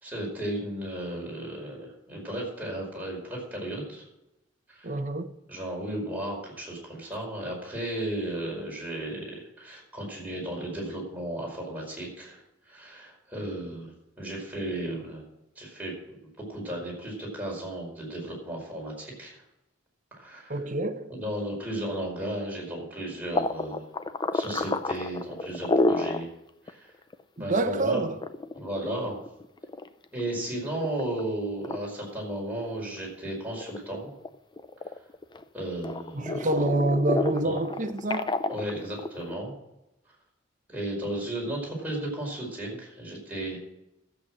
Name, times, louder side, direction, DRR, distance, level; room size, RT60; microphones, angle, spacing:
voice 1, 0.0-4.0 4.7-4.9 5.5-12.4 12.7-15.2 15.5-16.2 16.5-19.4 20.2-20.6 21.1-23.9 24.3-26.3 26.7-26.9 27.4-28.0 28.5-29.2 30.1-34.1 35.5-36.6 37.2-37.6 38.5-39.5 40.7-43.6, right 1 dB, 10° right, 5.1 m, -34 dB
voice 2, 4.8-5.3 20.5-21.1 27.4-28.1 36.1-38.3, right 2 dB, 40° right, 1.0 m, -27 dB
sound 1, 23.3-26.3 26.7-26.8 27.1-27.2 28.0-30.3 30.8-31.2 31.6-31.8 32.3-33.3 33.6-35.4 35.8-39.3, left 2 dB, 25° left, 0.5 m, -29 dB
13.0 x 8.1 x 6.2 m
head